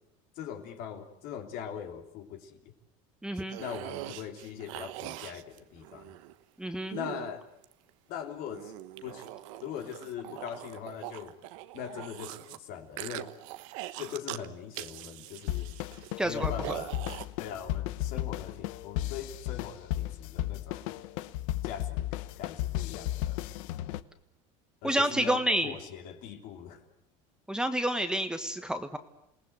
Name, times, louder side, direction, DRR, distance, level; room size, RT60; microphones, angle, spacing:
voice 1, 0.3-2.6 3.6-6.1 6.9-7.4 8.1-8.7 9.0-9.3 9.6-11.4 11.7-13.3 14.0-15.7 16.2-17.0 17.4-20.9 21.6-23.4 24.8-26.8, left 8 dB, 60° left, 5 dB, 3.5 m, -41 dB
voice 2, 3.2-3.6 6.6-7.0 16.2-16.8 24.8-25.7 27.5-29.0, right 1 dB, 5° right, 8 dB, 1.4 m, -29 dB
sound 1, 3.4-6.3 6.9-7.9 8.5-12.6 13.0-14.5 14.7-17.2, right 16 dB, 80° right, 1.3 m, -42 dB
sound 2, 15.5-24.0, left 14 dB, 80° left, 1.0 m, -34 dB
28.5 x 19.0 x 8.1 m, 0.82 s
supercardioid pair, 130°, 16 cm